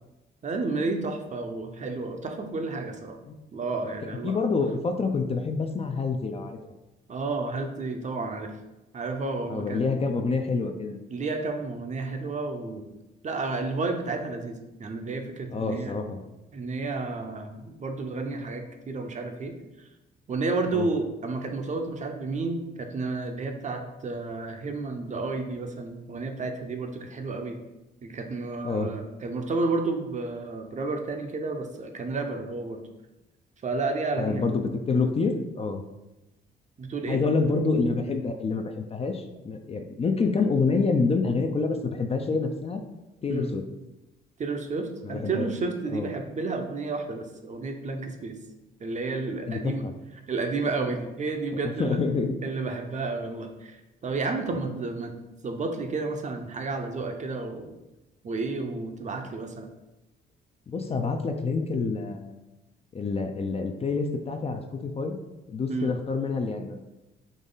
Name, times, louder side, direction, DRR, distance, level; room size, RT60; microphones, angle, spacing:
voice 1, 0.4-3.2 3.5-4.4 7.1-8.5 8.9-9.9 11.1-12.9 13.2-15.9 16.5-19.6 20.3-27.6 28.0-32.8 33.6-34.5 36.8-37.2 43.3-43.5 44.4-48.4 48.8-49.8 50.3-52.0 52.4-55.1 55.4-57.7 58.2-59.7 65.7-65.9, right 3 dB, 35° right, 5 dB, 0.6 m, -31 dB
voice 2, 4.2-6.6 9.5-11.0 15.5-16.2 20.7-20.9 28.6-28.9 34.2-35.8 37.1-42.8 43.2-43.6 45.0-45.5 45.9-46.1 49.5-49.9 51.6-52.3 60.7-62.4 62.9-65.2 65.5-66.8, left 4 dB, 30° left, 5 dB, 0.4 m, -27 dB
3.9 x 3.0 x 3.8 m, 0.99 s
cardioid pair, 90°, 20 cm